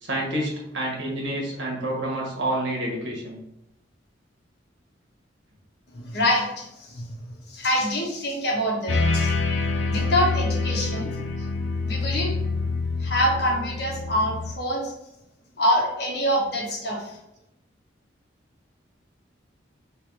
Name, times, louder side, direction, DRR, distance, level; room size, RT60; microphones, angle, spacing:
voice 1, 0.0-3.4, right 1 dB, 75° right, -2 dB, 1.4 m, -28 dB
voice 2, 5.9-7.1 7.5-9.3 9.9-11.2 11.8-12.3 13.0-14.9 15.6-17.2, equal, 60° left, -2 dB, 1.2 m, -25 dB
sound 1, 8.9-14.5, left 3 dB, 85° left, 0.6 m, -26 dB
3.4 x 3.1 x 4.6 m, 0.85 s
head